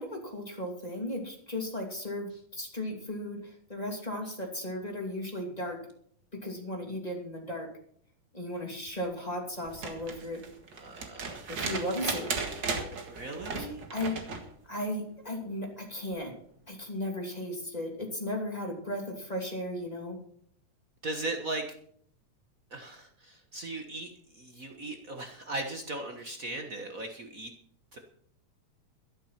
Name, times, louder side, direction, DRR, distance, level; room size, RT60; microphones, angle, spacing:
voice 1, 0.0-5.8 6.3-7.7 8.3-10.4 11.5-12.3 13.5-14.2 14.6-16.3 16.7-20.2, left 1 dB, 15° left, 1 dB, 2.3 m, -36 dB
sound 1, 9.6-14.5 16.1-16.2, right 4 dB, 40° right, 1.9 m, -36 dB
voice 2, 10.7-11.5 13.1-13.8 21.0-21.7 22.7-27.5 27.9-28.0, right 2 dB, 90° right, 4 dB, 0.7 m, -38 dB
12.5 x 12.5 x 5.8 m, 0.62 s
omnidirectional pair, 3.7 m